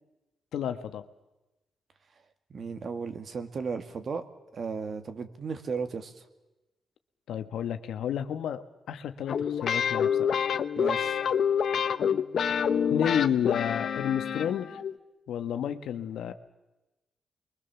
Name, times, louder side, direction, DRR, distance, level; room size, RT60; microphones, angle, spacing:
voice 1, 0.5-1.0 7.3-10.4 12.9-14.8 15.3-16.3, left 9 dB, 85° left, 9 dB, 1.4 m, -31 dB
voice 2, 2.5-4.2 4.5-6.1 10.8-11.2, right 5 dB, 50° right, 8 dB, 2.2 m, -35 dB
sound 1, 9.3-14.9, left 7 dB, 65° left, 0.9 m, -27 dB
29.0 x 22.5 x 7.1 m, 1.0 s
cardioid pair, 85°, 0 cm